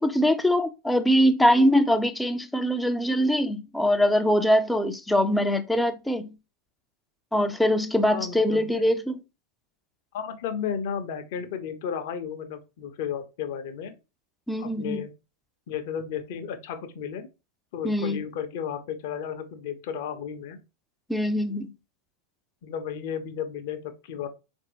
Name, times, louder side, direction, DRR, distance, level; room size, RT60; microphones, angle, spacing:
voice 1, 0.0-6.3 7.3-9.2 14.5-15.0 17.8-18.2 21.1-21.7, equal, 5° left, 0.4 m, -23 dB
voice 2, 8.1-8.7 10.1-14.0 14.6-15.1 15.7-17.3 17.7-20.6 22.6-24.3, left 8 dB, 50° left, 0.6 m, -33 dB
4.0 x 2.6 x 2.7 m
figure-of-eight pair, 90°, 0 cm